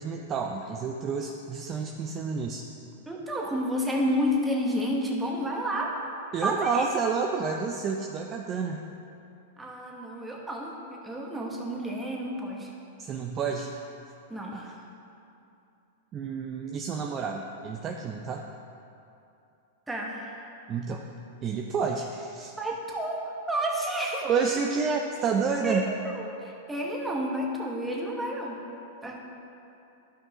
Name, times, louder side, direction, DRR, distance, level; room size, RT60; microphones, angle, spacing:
voice 1, 0.0-2.6 6.3-8.8 13.0-13.7 14.5-14.8 16.1-18.4 20.7-21.0 21.4-22.5 24.2-25.8, right 5 dB, 30° right, 2 dB, 0.4 m, -29 dB
voice 2, 3.1-5.9 6.4-6.8 9.6-12.7 14.3-14.6 19.9-20.4 22.6-24.3 25.6-28.6 29.0-29.2, equal, 10° right, -1 dB, 1.1 m, -30 dB
12.0 x 5.4 x 2.9 m, 2.7 s
hypercardioid pair, 130°, 0 cm